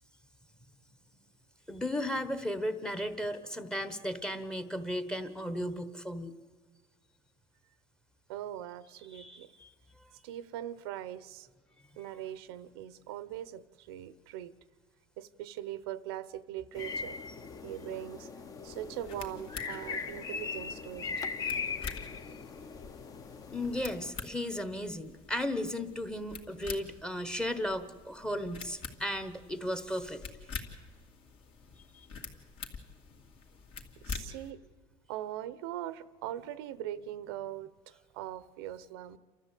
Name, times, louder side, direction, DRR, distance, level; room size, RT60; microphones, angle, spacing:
voice 1, 1.7-6.3 9.1-9.7 21.1-21.2 22.2-22.3 23.5-30.2 31.9-32.1, left 1 dB, 5° left, 11 dB, 1.2 m, -35 dB
voice 2, 8.3-9.5 10.2-11.5 12.0-14.5 15.2-17.2 17.6-18.3 18.6-21.3 28.3-28.4 34.0-34.6 35.1-37.7 38.1-39.2, right 12 dB, 90° right, 16 dB, 0.9 m, -41 dB
sound 1, 16.7-24.1, left 5 dB, 30° left, 1.1 m, -39 dB
sound 2, 18.6-34.5, left 5 dB, 45° left, 2.5 m, -47 dB
29.0 x 13.5 x 8.4 m, 1.4 s
cardioid pair, 140°, 12 cm